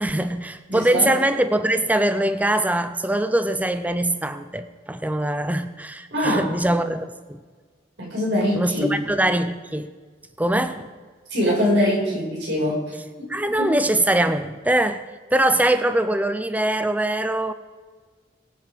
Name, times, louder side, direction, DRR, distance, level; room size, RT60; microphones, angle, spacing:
voice 1, 0.0-7.4 8.5-9.9 10.4-10.9 13.3-15.0 15.3-17.5, right 1 dB, 10° right, 10 dB, 0.6 m, -22 dB
voice 2, 0.7-1.1 6.1-6.5 8.0-8.9 10.5-10.6 11.3-12.8 13.2-13.7, equal, 75° right, -2 dB, 5.8 m, -23 dB
23.0 x 8.4 x 5.2 m, 1.4 s
head